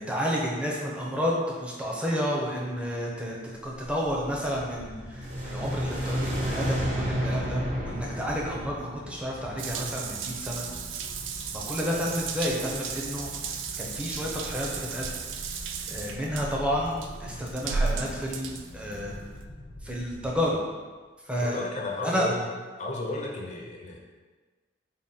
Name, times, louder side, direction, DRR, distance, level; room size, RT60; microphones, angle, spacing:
voice 1, 0.0-3.4 3.6-10.6 11.5-13.3 13.8-15.2 15.9-19.2 19.8-20.6 21.3-21.6 22.0-22.3, equal, 5° right, -3 dB, 0.5 m, -30 dB
sound 1, 3.5-20.9, left 1 dB, 90° left, 0.7 m, -45 dB
sound 2, 5.0-10.1, equal, 40° right, 0.7 m, -31 dB
Water tap faucet / Bathtub (filling or washing) / Drip, 9.6-19.4, right 5 dB, 80° right, 0.3 m, -35 dB
voice 2, 21.4-22.4 22.8-24.0, left 2 dB, 40° left, -1 dB, 0.5 m, -33 dB
3.6 x 2.1 x 4.0 m, 1.4 s
head